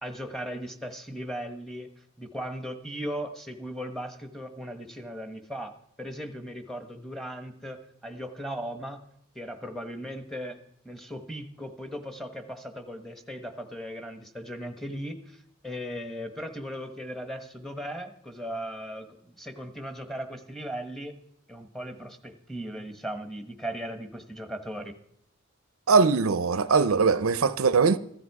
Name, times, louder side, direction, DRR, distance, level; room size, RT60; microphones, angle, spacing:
voice 1, 0.0-1.9 2.2-5.7 6.0-9.0 9.3-10.6 10.8-15.4 15.6-21.2 21.5-24.9, equal, ahead, 1.2 m, -37 dB
voice 2, 25.9-28.0, right 5 dB, 85° right, 0.6 m, -21 dB
15.0 x 13.5 x 4.8 m
head